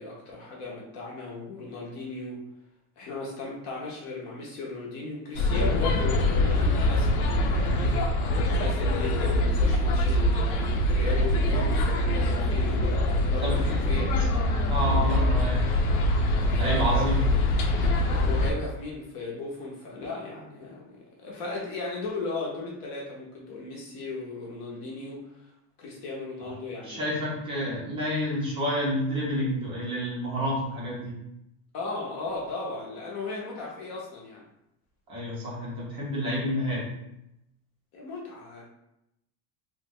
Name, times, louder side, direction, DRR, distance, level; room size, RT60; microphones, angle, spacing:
voice 1, 0.0-2.4 3.0-8.0 8.5-14.3 14.8-15.2 16.5-17.1 18.1-25.5 25.8-27.1 31.7-34.5 37.9-38.6, left 3 dB, 40° left, -3 dB, 0.6 m, -36 dB
sound 1, 5.4-18.5, left 1 dB, 90° left, 0.7 m, -24 dB
voice 2, 13.4-13.8 14.7-15.7 16.5-17.3 26.4-26.5 26.8-31.1 35.1-36.9, equal, 15° right, -6 dB, 0.4 m, -29 dB
2.9 x 2.0 x 3.5 m, 0.85 s
cardioid pair, 175°, 44 cm